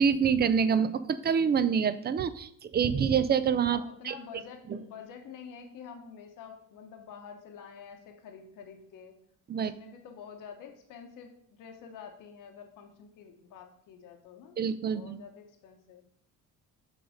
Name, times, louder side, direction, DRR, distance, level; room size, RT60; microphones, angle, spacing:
voice 1, 0.0-4.1 4.7-4.8 9.5-9.7 14.6-15.2, right 7 dB, 30° right, 14 dB, 0.4 m, -26 dB
voice 2, 3.7-9.1 9.6-14.6 14.9-16.0, left 7 dB, 85° left, 4 dB, 1.1 m, -48 dB
6.6 x 4.0 x 5.0 m, 0.68 s
cardioid pair, 115°, 32 cm